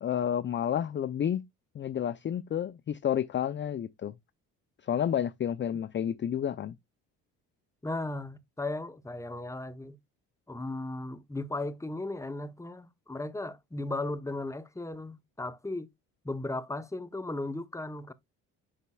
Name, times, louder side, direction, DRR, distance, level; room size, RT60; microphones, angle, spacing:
voice 1, 0.0-1.4 1.7-4.1 4.8-6.7, left 9 dB, 30° left, 0.5 m, -30 dB
voice 2, 7.8-10.0 10.5-15.9 16.2-18.1, left 2 dB, 5° left, 0.8 m, -36 dB
8.1 x 5.7 x 2.3 m
hypercardioid pair, 55°, 43 cm